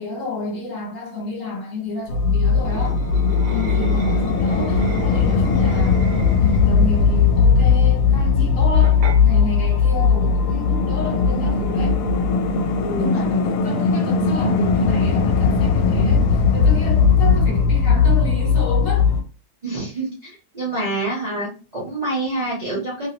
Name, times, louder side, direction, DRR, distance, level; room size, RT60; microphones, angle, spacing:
voice 1, 0.0-3.1 3.4-6.0 6.4-12.0 12.9-19.1, left 3 dB, 55° left, 1.3 m, -30 dB
sound 1, 2.1-19.2, left 5 dB, 80° left, 1.1 m, -18 dB
sound 2, 2.6-6.8 8.8-9.2, right 4 dB, 90° right, 1.2 m, -35 dB
voice 2, 12.8-13.1 19.6-23.1, right 2 dB, 35° right, 0.8 m, -27 dB
2.9 x 2.8 x 2.8 m
omnidirectional pair, 1.8 m